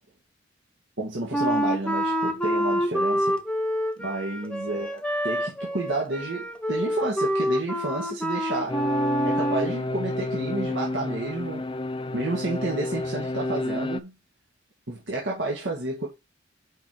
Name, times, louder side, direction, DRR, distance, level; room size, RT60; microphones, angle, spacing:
voice 1, 1.0-3.4 4.0-8.9 9.2-11.7 12.1-14.2 14.9-16.1, right 2 dB, 70° right, 2.0 m, -31 dB
Wind instrument woodwind instrument, 1.3-9.7, equal, 5° left, 1.0 m, -27 dB
sound 1, 8.7-14.0, left 2 dB, 25° left, 0.5 m, -30 dB
6.0 x 5.3 x 4.4 m
head